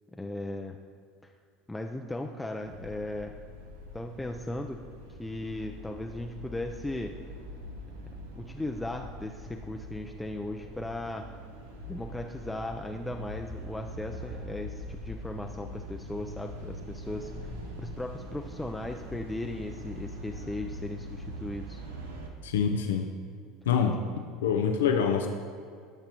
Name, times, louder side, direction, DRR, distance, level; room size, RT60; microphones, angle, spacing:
voice 1, 0.1-0.8 1.2-1.3 1.7-3.3 3.9-4.8 5.2-7.1 8.3-11.3 11.9-17.5 17.8-21.8, left 1 dB, 10° left, 3 dB, 0.4 m, -37 dB
sound 1, 2.6-22.3, equal, 90° right, 0.9 m, -42 dB
voice 2, 22.4-23.1 23.7-24.0 24.4-25.3, left 7 dB, 85° left, 4 dB, 0.5 m, -25 dB
12.0 x 5.9 x 2.9 m, 2.2 s
hypercardioid pair, 85°, 0 cm